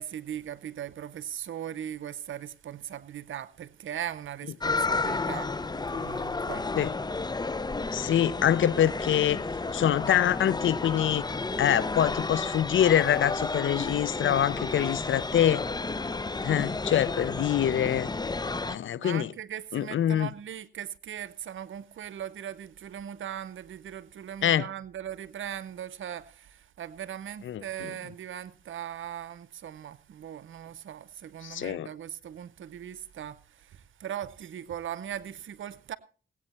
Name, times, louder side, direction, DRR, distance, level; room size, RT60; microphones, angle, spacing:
voice 1, 0.0-5.5 5.9-6.7 19.0-36.0, right 10 dB, 80° right, 0.7 m, -39 dB
sound 1, 4.6-18.8, left 3 dB, 20° left, 0.6 m, -32 dB
voice 2, 7.9-9.4 9.7-11.3 11.6-15.6 16.4-18.1 18.7-19.3 19.7-20.3 24.4-24.7 27.4-27.9 31.4-31.9, left 10 dB, 80° left, 0.6 m, -25 dB
18.0 x 8.6 x 4.2 m
cardioid pair, 55°, 20 cm